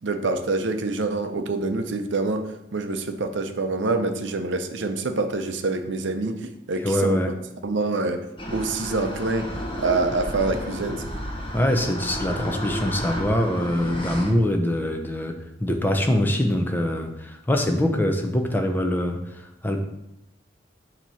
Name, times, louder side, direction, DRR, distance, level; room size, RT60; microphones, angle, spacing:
voice 1, 0.0-7.2 7.6-8.2 8.5-9.5 9.8-11.0, right 3 dB, 65° right, 7 dB, 0.6 m, -26 dB
voice 2, 6.8-7.3 11.5-19.2 19.6-19.8, left 1 dB, 10° left, 4 dB, 0.6 m, -23 dB
sound 1, 8.4-14.3, equal, 25° left, 1.1 m, -32 dB
7.3 x 3.0 x 5.6 m, 0.85 s
head